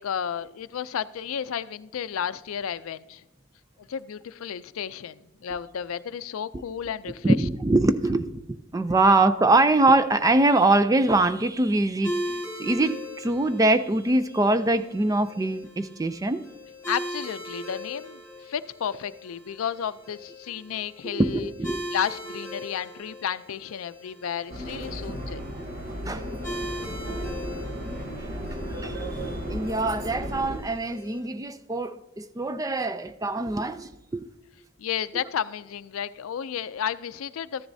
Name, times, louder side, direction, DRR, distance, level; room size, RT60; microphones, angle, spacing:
voice 1, 0.0-3.2 3.9-7.4 16.9-21.5 21.9-25.4 34.8-37.7, left 8 dB, 80° left, 0.4 m, -32 dB
voice 2, 7.2-8.3 8.7-16.4 21.0-21.8 26.1-26.3 26.9-27.2 28.8-29.1 29.5-34.3, right 2 dB, 15° right, 0.3 m, -23 dB
sound 1, 12.0-31.2, equal, 15° left, 2.9 m, -39 dB
Subway metro underground, 24.5-30.6, equal, 40° right, 1.1 m, -34 dB
13.5 x 10.0 x 2.7 m
head